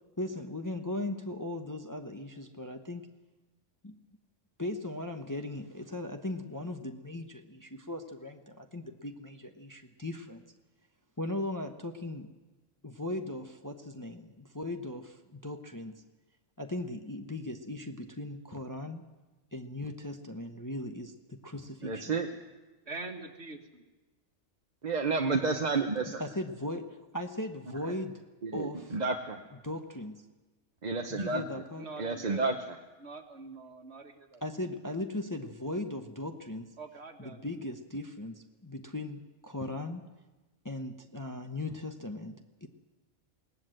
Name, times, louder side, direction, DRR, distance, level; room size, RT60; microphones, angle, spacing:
voice 1, 0.2-3.0 3.8-3.9 4.6-10.4 11.2-12.3 12.8-15.9 16.6-19.0 19.5-22.2 26.1-28.2 28.5-29.0 29.6-30.2 31.1-31.9 34.4-36.7 37.2-40.0 40.6-42.3 42.6-42.7, left 1 dB, 15° left, 5 dB, 0.9 m, -38 dB
voice 2, 21.8-22.3 24.8-26.2 28.4-29.4 30.8-31.4 32.0-32.5, right 4 dB, 40° right, 4 dB, 0.9 m, -30 dB
voice 3, 22.9-23.8 31.8-32.6 33.0-34.4 36.8-37.4, right 3 dB, 55° right, 4 dB, 2.0 m, -44 dB
20.5 x 17.5 x 7.8 m, 1.2 s
omnidirectional pair, 1.3 m